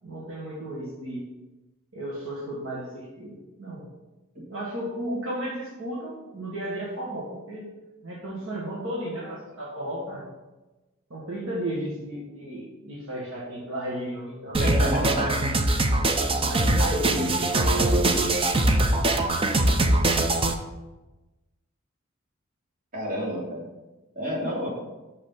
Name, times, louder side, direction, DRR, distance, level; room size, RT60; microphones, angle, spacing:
voice 1, 0.0-1.2 1.9-3.8 4.5-7.7 8.0-10.2 11.1-14.6 16.3-18.3, right 1 dB, 70° right, -5 dB, 1.7 m, -34 dB
sound 1, 14.5-20.5, right 2 dB, 25° right, 0.6 m, -22 dB
voice 2, 14.6-15.4 22.9-23.6 24.1-24.7, equal, 45° right, -5 dB, 2.9 m, -29 dB
6.6 x 5.6 x 5.8 m, 1.1 s
head